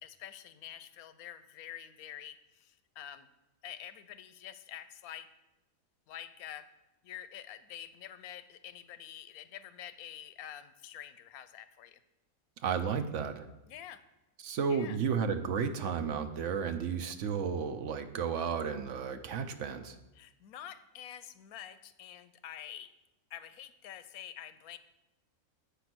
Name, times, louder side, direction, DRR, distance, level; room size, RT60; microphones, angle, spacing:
voice 1, 0.0-3.3 3.6-5.3 6.1-6.7 7.0-12.0 13.7-14.0 14.7-15.0 20.1-22.9 23.3-24.8, left 10 dB, 85° left, 12 dB, 1.1 m, -47 dB
voice 2, 12.6-13.5 14.4-20.0, right 6 dB, 65° right, 8 dB, 0.9 m, -33 dB
8.4 x 5.8 x 6.0 m, 0.96 s
omnidirectional pair, 1.5 m